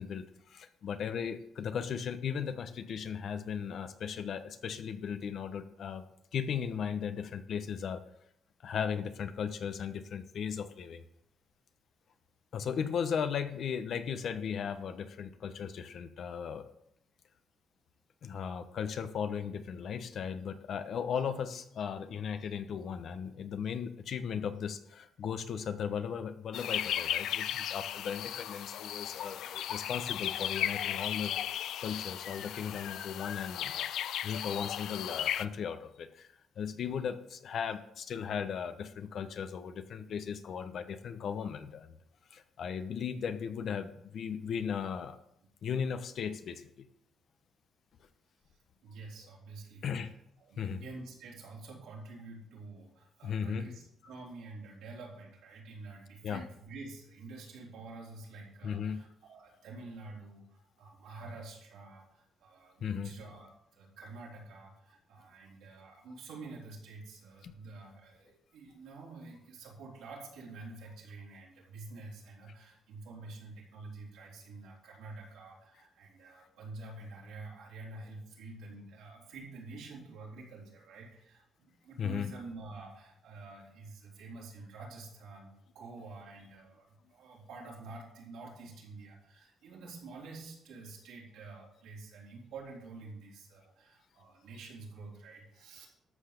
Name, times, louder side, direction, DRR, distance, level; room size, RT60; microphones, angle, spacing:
voice 1, 0.0-6.0 6.3-8.0 8.6-11.0 12.5-16.7 18.2-31.3 31.8-33.9 34.2-36.3 36.6-41.9 42.3-45.2 45.6-46.8 49.8-50.1 50.6-50.8 53.2-53.7 56.2-56.4 58.6-59.0 62.8-63.1 67.4-67.5 82.0-82.3, left 7 dB, 65° left, 10 dB, 1.1 m, -36 dB
sound 1, 26.5-35.5, left 11 dB, 80° left, 0.4 m, -35 dB
voice 2, 48.4-50.1 50.4-95.9, right 3 dB, 85° right, -3 dB, 4.1 m, -48 dB
13.0 x 5.8 x 6.8 m, 0.75 s
cardioid pair, 90°, 0 cm